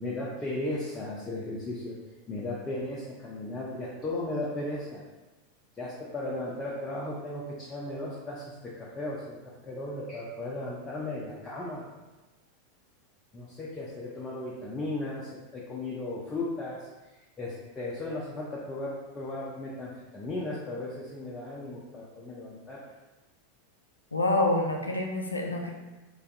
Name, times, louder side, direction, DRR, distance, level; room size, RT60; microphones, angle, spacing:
voice 1, 0.0-2.0 2.3-5.0 5.8-11.9 13.3-22.8, left 2 dB, 20° left, -6 dB, 0.4 m, -36 dB
voice 2, 24.1-25.7, left 2 dB, 85° left, 1 dB, 0.3 m, -27 dB
2.3 x 2.2 x 2.6 m, 1.1 s
figure-of-eight pair, 85°, 0 cm